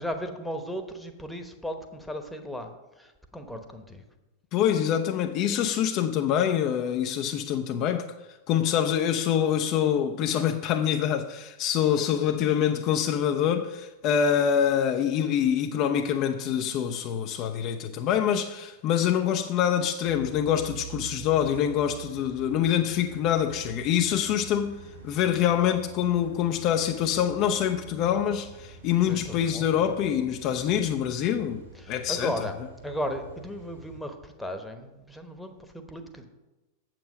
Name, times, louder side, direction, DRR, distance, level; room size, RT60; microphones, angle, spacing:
voice 1, 0.0-2.7 3.0-4.0 29.0-30.0 31.7-32.5 32.8-36.2, equal, 5° left, 1.0 m, -36 dB
voice 2, 4.5-8.1 8.5-24.8 25.0-31.6 31.9-32.3, left 9 dB, 40° left, 0.5 m, -25 dB
sound 1, 20.0-34.0, right 5 dB, 80° right, 2.3 m, -46 dB
7.6 x 7.5 x 5.0 m
figure-of-eight pair, 90°, 0 cm